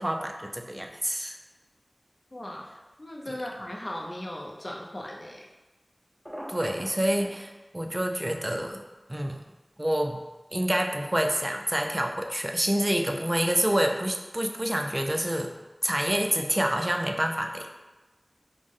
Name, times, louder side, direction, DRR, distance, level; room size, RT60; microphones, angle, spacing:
voice 1, 0.0-1.4 3.3-3.4 6.5-8.8 9.1-9.4 9.8-10.2 10.5-15.5 15.8-17.7, right 1 dB, 30° right, 3 dB, 0.4 m, -27 dB
voice 2, 2.3-2.7 3.0-5.5, left 1 dB, 50° left, -2 dB, 0.5 m, -37 dB
Telephone, 6.2-7.4, equal, 5° left, 1.3 m, -39 dB
5.1 x 2.1 x 3.5 m, 1.1 s
wide cardioid pair, 50°, 0 cm